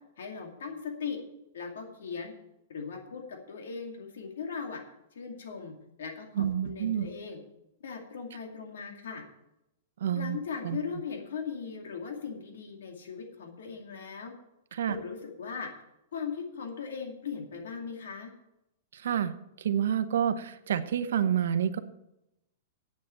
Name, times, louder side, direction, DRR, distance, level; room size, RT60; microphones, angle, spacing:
voice 1, 0.2-1.2 1.5-2.3 2.7-4.8 5.1-5.7 6.0-7.4 7.8-9.2 10.1-14.3 14.9-15.7 16.1-18.3, left 6 dB, 85° left, 3 dB, 2.3 m, -38 dB
voice 2, 6.4-7.1 10.0-10.4 10.6-10.8 14.7-15.0 18.9-21.8, right 9 dB, 80° right, 11 dB, 0.9 m, -28 dB
8.4 x 7.6 x 7.6 m, 0.86 s
supercardioid pair, 160°, 0 cm